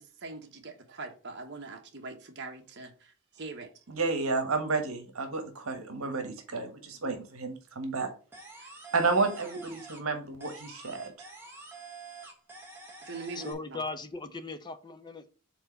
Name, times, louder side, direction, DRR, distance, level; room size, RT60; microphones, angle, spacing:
voice 1, 0.0-3.7 8.6-8.7 13.0-13.8, right 3 dB, 50° right, 1.1 m, -43 dB
voice 2, 3.9-8.1 8.9-11.1, right 4 dB, 70° right, 1.3 m, -31 dB
sound 1, 8.3-10.1 10.4-13.5, right 3 dB, 10° right, 1.2 m, -47 dB
voice 3, 13.4-15.3, left 3 dB, 20° left, 0.6 m, -38 dB
4.5 x 4.0 x 5.7 m
head